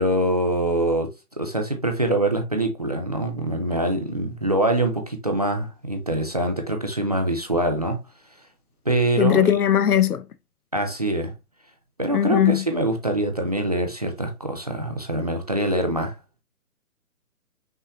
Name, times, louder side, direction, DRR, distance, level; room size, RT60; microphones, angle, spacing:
voice 1, 0.0-8.0 8.9-9.5 10.7-11.3 12.0-16.2, right 1 dB, 30° right, 0.5 m, -24 dB
voice 2, 9.2-10.2 12.1-12.6, left 10 dB, 80° left, 0.8 m, -19 dB
5.6 x 3.1 x 2.5 m
hypercardioid pair, 160°, 44 cm